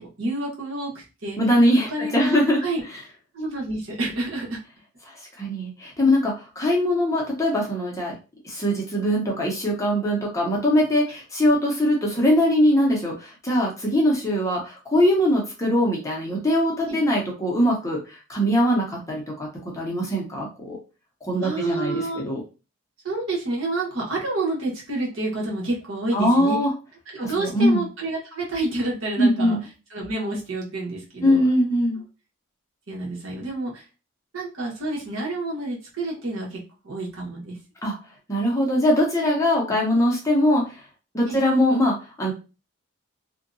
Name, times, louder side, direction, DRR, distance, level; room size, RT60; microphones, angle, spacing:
voice 1, 0.0-1.4 1.9-2.8 3.3-4.6 16.9-17.0 21.4-22.2 23.0-26.6 27.1-29.6 29.9-31.5 32.9-33.8 34.3-36.6 36.8-37.6 39.7-39.8 41.3-41.4, right 2 dB, 75° right, -3 dB, 1.1 m, -29 dB
voice 2, 1.4-2.6 5.4-8.1 8.4-19.5 19.7-20.8 21.2-22.4 26.1-26.7 27.4-27.9 29.2-29.6 31.2-32.0 37.8-37.9 38.3-40.6 41.1-42.3, equal, 15° left, -2 dB, 0.6 m, -21 dB
2.7 x 2.2 x 2.5 m, 0.31 s
head